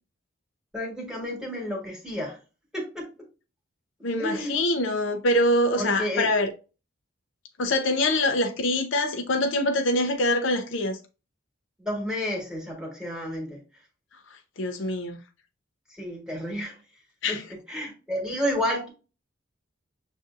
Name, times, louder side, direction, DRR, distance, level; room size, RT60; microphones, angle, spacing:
voice 1, 0.7-2.4 2.7-3.1 4.2-4.6 5.8-6.3 11.8-13.6 16.0-16.8 17.3-17.4 17.7-18.9, equal, 5° right, 1.3 m, -31 dB
voice 2, 4.0-6.5 7.6-11.0 14.6-15.2 17.2-17.4, left 1 dB, 65° left, 0.5 m, -24 dB
6.4 x 2.6 x 2.4 m
head